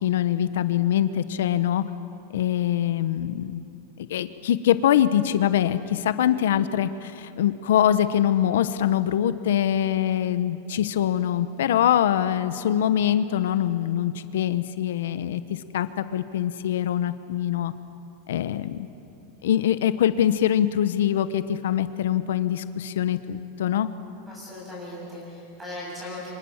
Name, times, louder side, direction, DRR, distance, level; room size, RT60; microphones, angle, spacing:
voice 1, 0.0-1.9 2.3-3.6 4.0-17.7 18.3-18.9 19.4-23.9, left 10 dB, 85° left, 12 dB, 1.0 m, -23 dB
voice 2, 24.3-26.3, left 1 dB, 5° right, -5 dB, 7.9 m, -38 dB
27.5 x 25.0 x 7.3 m, 2.7 s
supercardioid pair, 175°, 0 cm